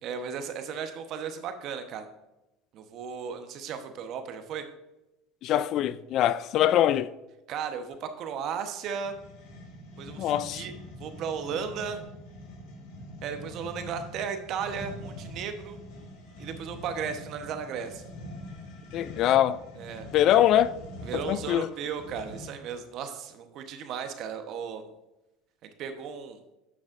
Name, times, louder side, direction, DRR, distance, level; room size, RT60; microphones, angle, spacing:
voice 1, 0.0-2.1 2.7-4.6 7.5-9.1 10.0-10.7 11.0-12.0 13.2-15.8 16.4-18.0 19.8-20.1 21.1-24.9 25.6-26.4, right 7 dB, 55° right, 1.0 m, -35 dB
voice 2, 5.4-7.1 10.2-10.6 18.9-19.6 20.1-20.8 21.3-21.7, left 11 dB, 55° left, 0.3 m, -23 dB
sound 1, 9.0-22.7, left 1 dB, 70° left, 1.8 m, -44 dB
9.5 x 6.2 x 2.5 m
hypercardioid pair, 90°, 0 cm